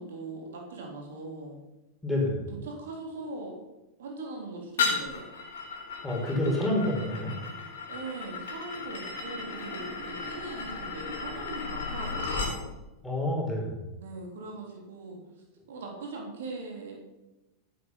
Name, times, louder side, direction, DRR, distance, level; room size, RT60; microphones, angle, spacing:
voice 1, 0.0-1.6 2.5-3.6 4.0-5.3 7.9-12.7 14.0-15.2 15.7-17.0, right 3 dB, 60° right, 0 dB, 3.5 m, -40 dB
voice 2, 2.0-2.5 6.0-7.3 13.0-13.9, left 1 dB, 5° left, -2 dB, 5.1 m, -28 dB
sound 1, 4.8-12.6, left 4 dB, 60° left, 3.6 m, -35 dB
14.5 x 8.9 x 5.9 m, 1.0 s
figure-of-eight pair, 90°, 0 cm